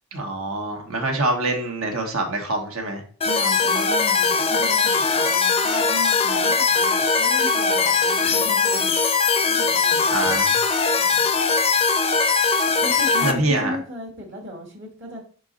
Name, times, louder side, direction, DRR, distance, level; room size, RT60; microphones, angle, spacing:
voice 1, 0.1-3.0 10.1-10.6 13.2-13.8, right 2 dB, 70° right, 3 dB, 1.4 m, -25 dB
sound 1, 3.2-13.3, left 4 dB, 25° left, 0.6 m, -20 dB
voice 2, 3.2-8.9 9.4-10.4 11.0-11.3 12.8-15.2, equal, 55° right, -1 dB, 1.5 m, -35 dB
5.2 x 4.7 x 3.9 m, 0.43 s
head